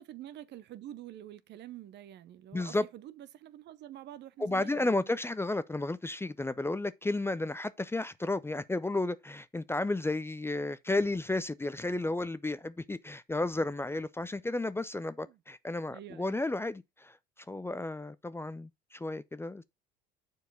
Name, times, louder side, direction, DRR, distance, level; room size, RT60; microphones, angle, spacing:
voice 1, 0.1-5.0 15.2-15.4 15.9-16.4, right 12 dB, 55° right, 0.7 m, -47 dB
voice 2, 2.5-2.8 4.4-17.2 17.5-19.6, left 2 dB, 10° left, 0.5 m, -33 dB
6.9 x 4.7 x 4.8 m
hypercardioid pair, 65°, 21 cm